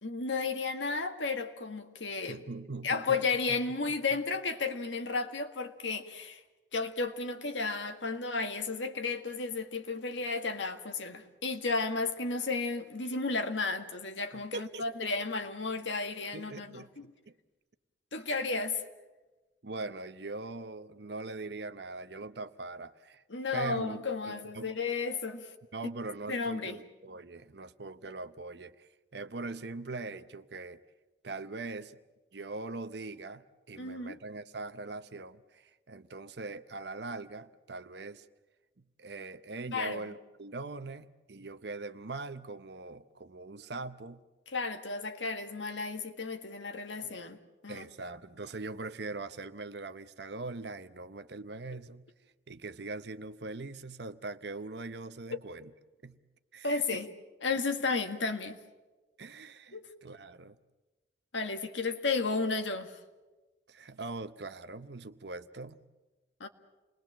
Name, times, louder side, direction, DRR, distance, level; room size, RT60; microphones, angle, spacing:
voice 1, 0.0-2.4 2.8-6.4 6.7-17.1 18.1-18.8 23.3-25.5 26.3-26.7 33.8-34.2 39.7-40.0 44.5-47.4 47.6-47.9 56.6-57.1 57.4-58.6 59.7-59.9 61.3-62.9 66.4-66.5, left 4 dB, 85° left, 6 dB, 1.9 m, -33 dB
voice 2, 2.3-3.8 4.1-4.2 14.3-15.1 16.3-17.3 18.3-18.5 19.6-23.2 23.5-24.7 25.7-30.8 31.2-32.0 32.3-38.3 39.0-44.2 47.0-47.2 47.7-52.0 52.5-55.7 56.0-56.2 56.5-57.0 59.2-60.6 63.7-65.8, right 3 dB, 65° right, 11 dB, 0.9 m, -42 dB
28.5 x 20.5 x 7.5 m, 1.2 s
head